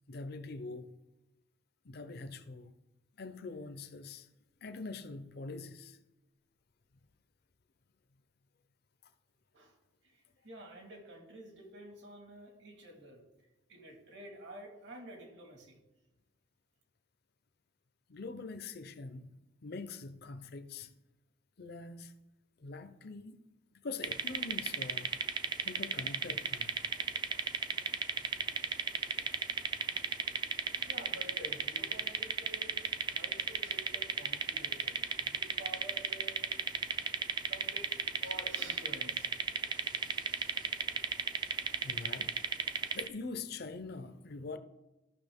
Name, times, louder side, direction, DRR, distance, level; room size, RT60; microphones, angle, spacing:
voice 1, 0.1-0.9 1.8-2.7 3.2-4.3 4.6-6.0 18.1-19.3 19.6-21.0 21.6-22.1 22.6-23.4 23.7-25.1 25.6-26.7 41.8-42.3 42.9-44.6, left 3 dB, 55° left, 0.6 m, -44 dB
voice 2, 10.0-13.2 13.7-15.8 30.4-36.5 37.5-39.3, right 1 dB, 65° right, 2.0 m, -50 dB
sound 1, 24.0-43.1, right 5 dB, 25° right, 0.4 m, -34 dB
14.0 x 5.9 x 3.5 m
head